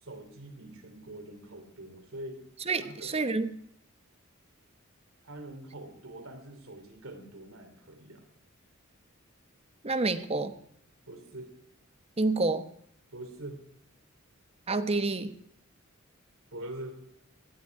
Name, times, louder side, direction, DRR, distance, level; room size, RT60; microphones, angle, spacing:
voice 1, 0.0-2.4 2.8-3.1 5.2-8.3 11.1-11.5 13.1-13.6 16.5-17.0, right 1 dB, 70° right, 4 dB, 3.5 m, -44 dB
voice 2, 2.7-3.6 9.8-10.5 12.2-12.7 14.7-15.3, right 3 dB, 30° right, 10 dB, 1.1 m, -28 dB
18.0 x 12.5 x 4.8 m, 0.69 s
head